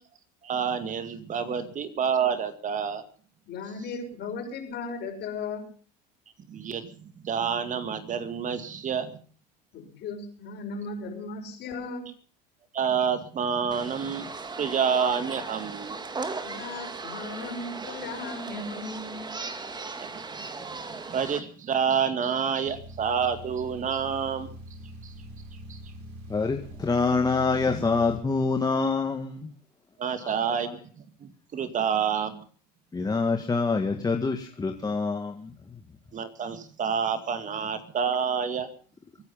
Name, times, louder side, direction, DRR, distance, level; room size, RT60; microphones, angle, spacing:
voice 1, 0.4-3.0 6.5-9.2 12.7-14.3 14.6-16.0 20.0-24.5 25.0-25.1 25.7-25.8 30.0-30.8 31.2-32.4 36.1-38.7, right 7 dB, 35° right, 10 dB, 2.2 m, -28 dB
voice 2, 3.5-5.7 9.7-12.1 16.4-19.3, left 3 dB, 50° left, 4 dB, 6.0 m, -36 dB
sound 1, 13.7-21.4, right 4 dB, 20° right, 2.1 m, -37 dB
sound 2, 22.6-28.2, equal, 75° right, 5.4 m, -43 dB
voice 3, 26.3-29.5 30.2-30.7 32.9-35.5, left 4 dB, 20° left, 4 dB, 1.9 m, -26 dB
23.5 x 9.5 x 5.7 m, 0.44 s
supercardioid pair, 90°, 21 cm